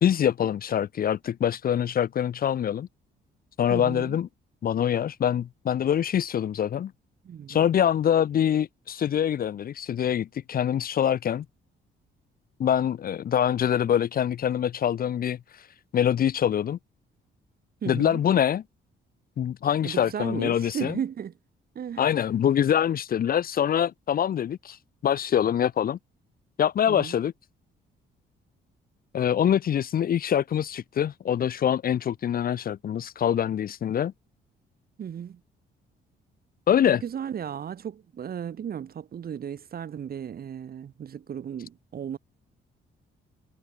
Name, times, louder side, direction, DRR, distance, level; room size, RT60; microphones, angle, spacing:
voice 1, 0.0-2.9 3.6-4.3 4.6-6.9 7.5-11.4 12.6-15.4 15.9-16.8 17.9-18.6 19.4-21.0 22.0-24.8 25.0-26.0 26.6-27.3 29.1-34.1 36.7-37.0, left 9 dB, 50° left, 0.6 m, -24 dB
voice 2, 3.7-4.2 7.2-7.6 17.8-18.2 19.8-21.3 21.7-22.1 26.9-27.2 35.0-35.4 37.0-42.2, right 8 dB, 50° right, 1.1 m, -35 dB
cardioid pair, 90°, 20 cm